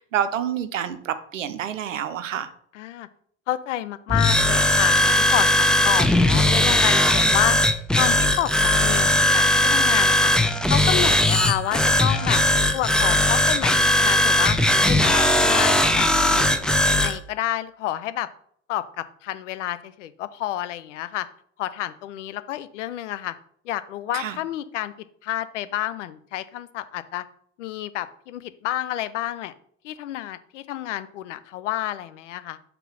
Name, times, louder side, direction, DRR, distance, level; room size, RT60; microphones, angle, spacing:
voice 1, 0.0-2.5 24.1-24.4, right 9 dB, 80° right, 12 dB, 0.6 m, -28 dB
voice 2, 2.7-3.1 3.5-7.6 8.0-10.3 10.7-12.4 12.7-14.6 14.9-18.3 18.7-21.3 21.6-23.3 23.6-24.9 25.2-27.2 27.6-29.5 29.8-32.6, left 13 dB, 70° left, 14 dB, 0.6 m, -29 dB
sound 1, 4.1-17.2, left 1 dB, ahead, 0.5 m, -19 dB
5.5 x 4.1 x 5.5 m, 0.62 s
figure-of-eight pair, 60°, 37 cm